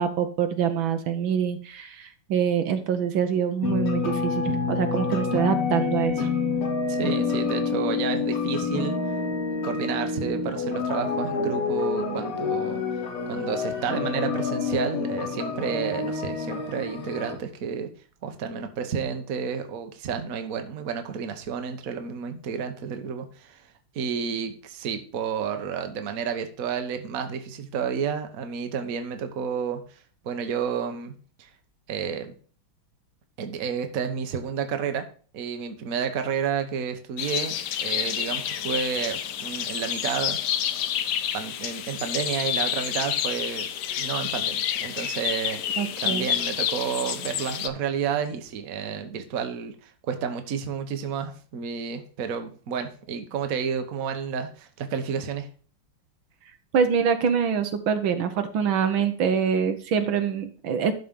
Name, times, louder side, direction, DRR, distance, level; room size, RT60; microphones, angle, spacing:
voice 1, 0.0-6.3 45.8-46.3 56.7-60.9, right 7 dB, 70° right, 8 dB, 1.6 m, -25 dB
sound 1, 3.6-17.4, left 5 dB, 85° left, 2.5 m, -28 dB
voice 2, 6.9-8.9 9.6-12.8 13.3-17.9 18.2-23.6 23.9-29.8 30.2-31.1 31.4-31.5 31.9-32.3 33.4-35.0 35.3-40.4 41.3-43.7 44.0-55.5, right 7 dB, 50° right, 7 dB, 1.3 m, -31 dB
sound 2, 37.2-47.7, left 10 dB, 70° left, 1.1 m, -29 dB
12.0 x 4.2 x 5.2 m, 0.41 s
omnidirectional pair, 2.3 m